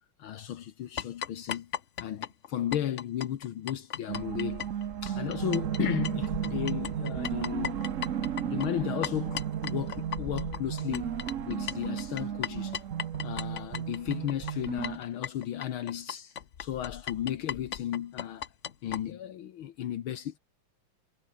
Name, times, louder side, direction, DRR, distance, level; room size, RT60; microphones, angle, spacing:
voice 1, 0.2-1.7 2.0-4.6 5.0-7.8 8.5-11.2 11.5-12.8 13.2-18.5 18.8-20.4, left 11 dB, 70° left, 1.9 m, -34 dB
sound 1, 1.0-5.8 6.0-19.0, left 8 dB, 50° left, 0.9 m, -38 dB
sound 2, 4.1-15.0, right 9 dB, 55° right, 0.9 m, -34 dB
omnidirectional pair, 2.4 m